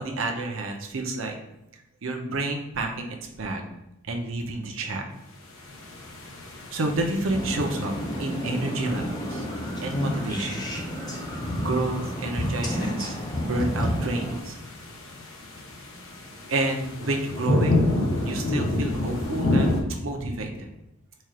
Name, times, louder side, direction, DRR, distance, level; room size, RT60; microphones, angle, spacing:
voice 1, 0.0-1.4 2.0-3.6 4.1-5.0 6.7-7.9 8.2-9.4 9.8-10.7 11.5-14.6 16.5-17.8 18.2-20.7, right 2 dB, 70° right, 2 dB, 0.7 m, -29 dB
sound 1, 5.5-19.8, left 1 dB, 75° left, 0.8 m, -30 dB
sound 2, 7.3-14.4, equal, 20° left, 0.6 m, -30 dB
4.3 x 2.5 x 4.8 m, 0.88 s
head